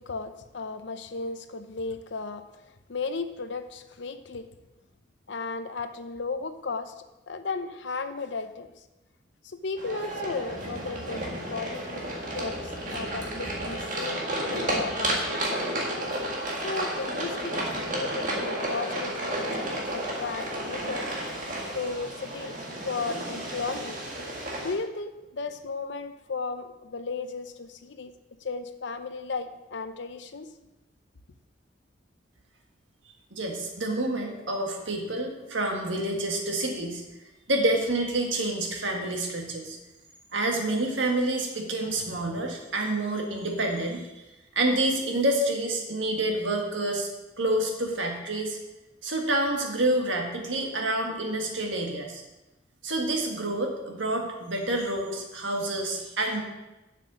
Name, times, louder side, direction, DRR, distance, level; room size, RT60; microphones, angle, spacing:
voice 1, 0.0-2.4 2.9-4.5 5.3-6.9 7.3-8.7 9.6-12.6 12.9-15.9 16.6-17.6 17.9-21.1 21.7-22.6 22.9-24.0 24.6-28.1 28.4-30.5, left 4 dB, 70° left, 10 dB, 0.7 m, -35 dB
sound 1, 9.8-24.7, right 1 dB, 40° right, 1.8 m, -32 dB
voice 2, 33.3-37.0 37.5-39.8 40.3-44.0 44.5-47.1 47.4-48.6 49.0-52.2 52.8-56.4, right 1 dB, 80° right, 2 dB, 1.7 m, -28 dB
7.6 x 6.8 x 6.1 m, 1.0 s
head